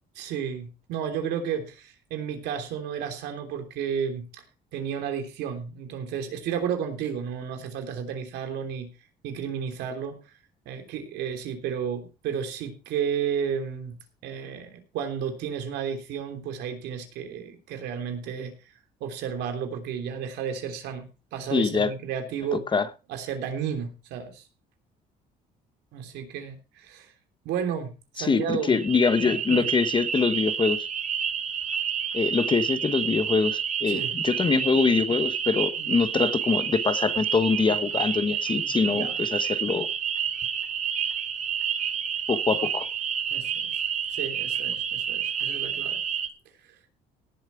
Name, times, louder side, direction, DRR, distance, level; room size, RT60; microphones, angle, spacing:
voice 1, 0.1-4.2 4.7-8.9 9.2-10.2 10.6-13.9 14.2-18.5 19.0-22.6 23.1-24.4 25.9-27.1 27.4-28.8 29.2-29.7 33.9-34.1 35.8-35.9 38.5-39.2 43.3-43.8 44.1-46.0, right 7 dB, 85° right, 5 dB, 3.3 m, -32 dB
voice 2, 21.5-21.9 22.7-22.9 28.2-30.8 32.1-39.9 42.3-42.9, left 5 dB, 30° left, 12 dB, 1.1 m, -24 dB
sound 1, 28.6-46.3, right 8 dB, 45° right, 1.7 m, -29 dB
17.5 x 7.4 x 4.6 m, 0.32 s
cardioid pair, 110°, 17 cm